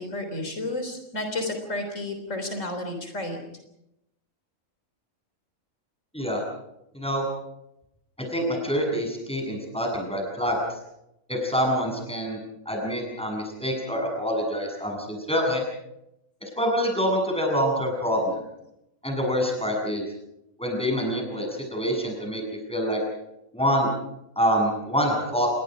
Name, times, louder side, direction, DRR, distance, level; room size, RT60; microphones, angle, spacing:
voice 1, 0.0-3.4, left 2 dB, 70° left, 5 dB, 4.0 m, -31 dB
voice 2, 6.9-7.3 8.3-10.6 11.3-12.4 12.7-15.6 16.6-18.3 19.0-20.0 20.6-22.4 22.7-23.0 23.5-23.9 24.4-25.5, equal, 5° left, 1 dB, 7.5 m, -26 dB
28.5 x 22.5 x 5.1 m, 0.84 s
omnidirectional pair, 1.4 m